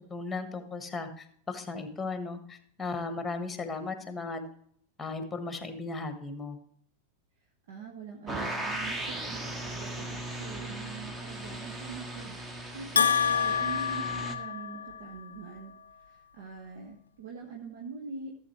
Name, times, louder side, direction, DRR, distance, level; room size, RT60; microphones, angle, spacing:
voice 1, 0.1-4.5 5.0-6.6, left 3 dB, 10° left, 9 dB, 1.4 m, -36 dB
voice 2, 7.7-18.4, right 4 dB, 55° right, 2 dB, 1.3 m, -44 dB
sound 1, 8.3-14.3, right 1 dB, 15° right, 1.4 m, -37 dB
Bell, 13.0-15.1, left 7 dB, 70° left, 0.5 m, -27 dB
15.0 x 7.5 x 3.2 m, 0.62 s
figure-of-eight pair, 90°, 0 cm